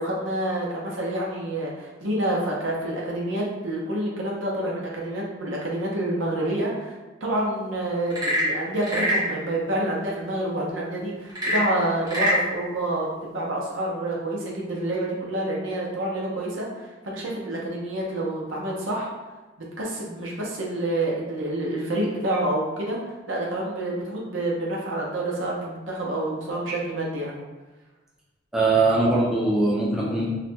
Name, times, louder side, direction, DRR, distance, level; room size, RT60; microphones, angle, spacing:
voice 1, 0.0-6.9 7.2-19.1 19.8-23.0 23.3-27.4, right 1 dB, 85° right, -3 dB, 0.8 m, -28 dB
Frog / Percussion / Wood, 8.0-9.3 11.3-12.4, equal, 20° right, 0.9 m, -24 dB
voice 2, 28.5-30.3, right 2 dB, 5° right, -5 dB, 0.6 m, -21 dB
4.3 x 2.5 x 2.2 m, 1.2 s
head